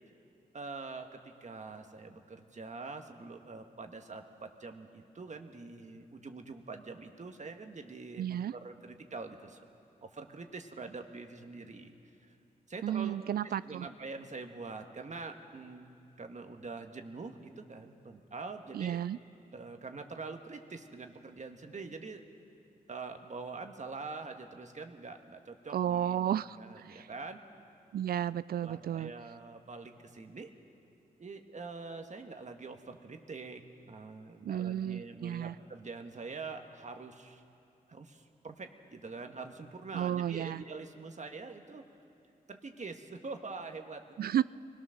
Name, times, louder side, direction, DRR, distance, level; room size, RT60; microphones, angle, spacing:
voice 1, 0.5-8.2 8.5-9.6 10.0-11.9 12.7-15.9 16.2-19.0 19.5-22.2 22.9-26.3 26.6-27.4 28.6-30.5 31.2-37.4 37.9-41.8 42.5-44.0, right 4 dB, 50° right, 5 dB, 1.5 m, -45 dB
voice 2, 8.2-8.5 12.8-13.9 18.7-19.2 25.7-27.1 27.9-29.1 34.4-35.5 39.9-40.6 44.2-44.4, right 10 dB, 75° right, 18 dB, 0.4 m, -33 dB
24.0 x 17.5 x 6.5 m, 2.7 s
cardioid pair, 55°, 16 cm